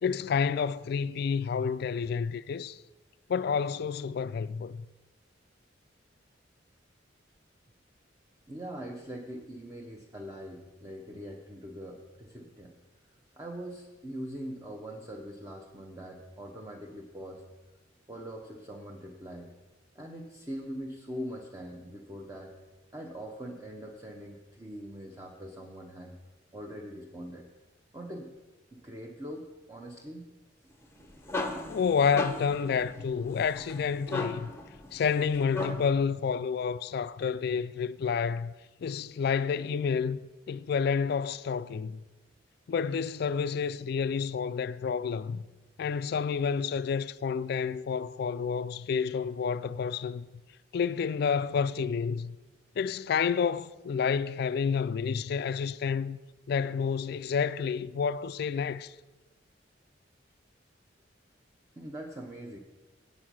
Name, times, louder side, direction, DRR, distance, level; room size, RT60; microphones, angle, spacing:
voice 1, 0.0-2.8 3.3-4.9 31.7-34.5 34.9-38.5 38.8-40.2 40.5-42.0 42.7-45.5 45.8-50.3 50.7-52.4 52.8-56.2 56.5-58.9, left 6 dB, 55° left, 0.3 m, -29 dB
voice 2, 8.5-12.8 13.4-17.4 18.1-19.5 19.9-22.6 22.9-26.1 26.5-27.5 27.9-28.3 28.7-30.3 31.0-31.4 61.8-62.6, equal, 15° right, 0.8 m, -42 dB
sound 1, 30.8-36.1, left 2 dB, 15° left, 0.7 m, -37 dB
8.5 x 8.0 x 6.1 m
head